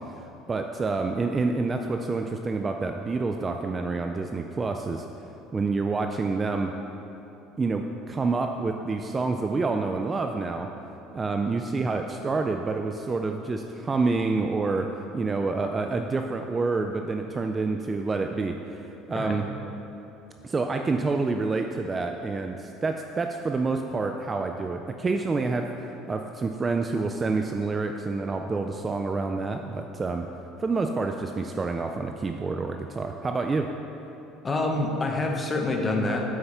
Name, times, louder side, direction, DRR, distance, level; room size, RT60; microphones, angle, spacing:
voice 1, 0.0-5.1 5.5-6.7 7.6-10.7 11.1-19.5 20.4-25.7 26.1-30.3 30.6-33.7, right 3 dB, 20° right, 5 dB, 0.3 m, -28 dB
voice 2, 34.4-36.2, left 2 dB, 20° left, 2 dB, 0.9 m, -26 dB
7.9 x 5.7 x 5.5 m, 3.0 s
cardioid pair, 150°, 0 cm